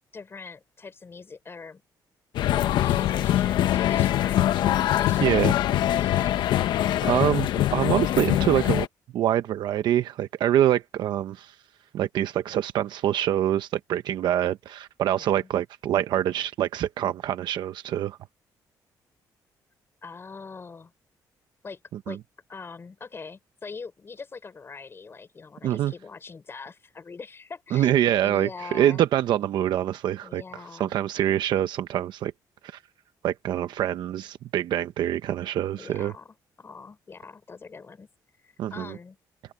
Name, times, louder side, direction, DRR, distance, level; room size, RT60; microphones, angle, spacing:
voice 1, 0.1-1.8 2.6-4.5 4.9-5.6 5.9-6.3 15.1-15.5 20.0-20.9 21.6-21.8 22.1-22.2 22.5-27.9 28.2-29.0 30.2-30.9 35.7-38.1 38.4-39.2, left 4 dB, 30° left, 5.7 m, -42 dB
sound 1, 2.3-8.9, left 13 dB, 80° left, 1.0 m, -23 dB
voice 2, 5.2-5.5 7.0-8.9 9.1-11.5 11.9-18.2 22.1-22.2 25.6-25.9 27.7-30.4 30.7-32.3 33.2-36.1 38.6-39.0, right 11 dB, 75° right, 0.9 m, -25 dB
open air
cardioid pair, 105°, 8 cm